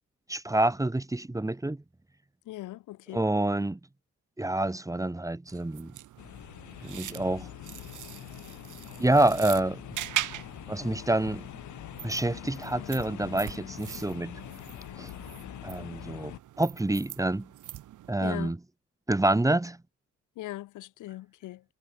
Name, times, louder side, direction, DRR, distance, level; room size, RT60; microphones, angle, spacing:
voice 1, 0.3-1.8 3.1-3.8 4.4-5.9 6.8-7.5 9.0-9.8 10.7-11.5 12.0-14.4 15.0-15.1 15.6-17.5 18.1-18.6 19.1-19.8, right 2 dB, 10° right, 1.6 m, -27 dB
voice 2, 2.5-3.2 18.2-18.5 20.4-21.6, left 16 dB, 90° left, 2.4 m, -40 dB
sound 1, 5.5-18.1, right 13 dB, 80° right, 6.5 m, -41 dB
sound 2, 6.2-16.4, left 13 dB, 75° left, 1.6 m, -44 dB
cardioid pair, 90°, 30 cm